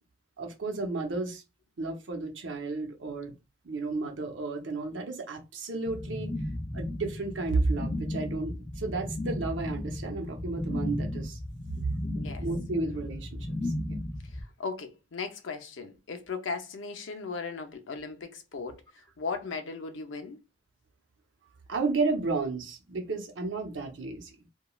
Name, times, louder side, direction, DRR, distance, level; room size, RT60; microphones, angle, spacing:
voice 1, 0.4-1.4 1.8-3.3 3.6-6.3 6.7-11.4 12.4-13.4 13.6-14.0 21.7-24.4, right 3 dB, 75° right, 0.7 m, -32 dB
sound 1, 5.9-14.4, left 1 dB, 20° left, 0.4 m, -35 dB
voice 2, 12.1-12.5 14.2-20.4, left 4 dB, 85° left, 0.6 m, -37 dB
3.0 x 2.3 x 2.3 m
head